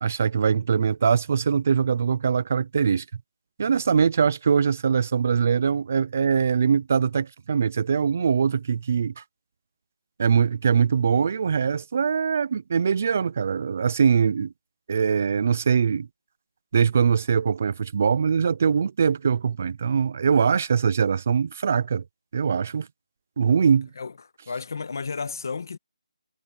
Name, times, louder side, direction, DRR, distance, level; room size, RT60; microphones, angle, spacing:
voice 1, 0.0-3.0 3.6-9.2 10.2-14.5 14.9-16.1 16.7-22.0 22.3-22.9 23.4-23.9, right 6 dB, 20° right, 0.3 m, -22 dB
voice 2, 24.5-25.8, left 4 dB, 35° left, 1.3 m, -32 dB
hypercardioid pair, 180°, 3 cm